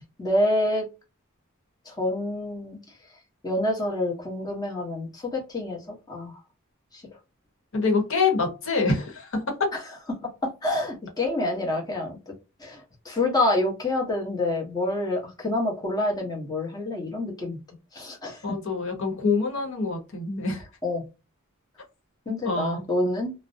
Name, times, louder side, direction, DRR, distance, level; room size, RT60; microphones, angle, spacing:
voice 1, 0.2-0.9 1.9-2.8 3.4-5.8 6.1-6.4 6.9-7.0 10.6-12.2 12.6-17.6 17.9-18.6 20.8-21.0 22.3-23.3, left 1 dB, 20° left, 0 dB, 0.9 m, -27 dB
voice 2, 7.7-9.7 18.4-20.6 22.4-22.9, left 4 dB, 65° left, 2 dB, 1.0 m, -25 dB
2.5 x 2.0 x 2.6 m, 0.28 s
head